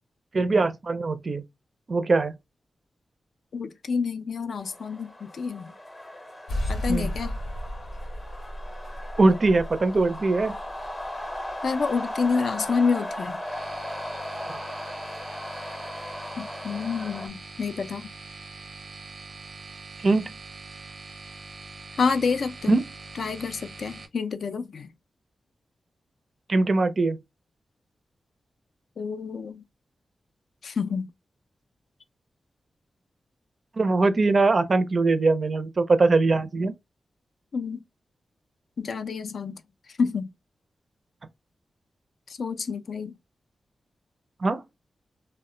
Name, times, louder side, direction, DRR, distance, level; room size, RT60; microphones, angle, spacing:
voice 1, 0.3-1.4 1.9-2.3 6.9-7.1 9.2-10.6 14.5-14.6 20.0-20.3 22.7-22.8 26.5-27.2 33.8-36.7 44.4-44.6, right 3 dB, 40° right, 0.4 m, -22 dB
voice 2, 3.5-5.7 6.7-7.4 11.6-13.4 16.4-18.1 22.0-22.8 23.2-24.9 29.0-29.6 30.6-31.1 37.5-37.8 38.8-39.6 40.0-40.3 42.3-43.1, left 5 dB, 65° left, 0.3 m, -28 dB
sound 1, 4.6-17.3, left 1 dB, 25° left, 0.6 m, -37 dB
sound 2, 6.5-13.6, left 1 dB, 85° left, 0.7 m, -35 dB
sound 3, 13.4-24.1, right 3 dB, 90° right, 0.6 m, -43 dB
2.1 x 2.1 x 3.6 m
wide cardioid pair, 140°, 0 cm